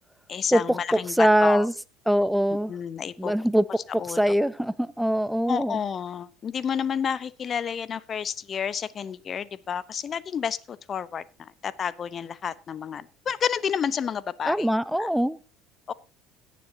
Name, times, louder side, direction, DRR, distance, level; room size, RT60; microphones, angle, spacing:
voice 1, 0.3-1.7 2.7-3.3 4.0-4.2 5.5-14.7 15.0-15.1 15.9-16.0, left 7 dB, 40° left, 0.7 m, -30 dB
voice 2, 1.2-1.7 2.1-2.7 3.2-3.6 4.2-5.8 14.5-15.4, equal, ahead, 0.7 m, -22 dB
17.0 x 9.3 x 2.7 m
hypercardioid pair, 70°, 0 cm